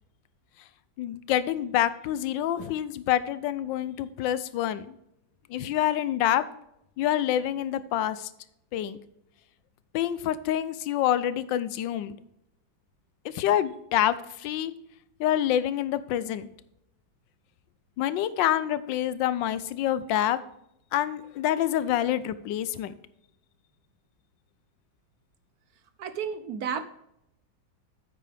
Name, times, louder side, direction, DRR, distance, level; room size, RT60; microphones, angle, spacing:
voice 1, 1.0-4.9 5.5-6.4 7.0-8.3 8.7-9.0 9.9-12.2 13.2-14.7 15.2-16.5 18.0-20.4 20.9-22.9, left 11 dB, 90° left, 15 dB, 1.3 m, -27 dB
voice 2, 26.0-26.8, right 7 dB, 65° right, 11 dB, 1.0 m, -32 dB
9.4 x 8.2 x 3.4 m, 0.81 s
omnidirectional pair, 2.0 m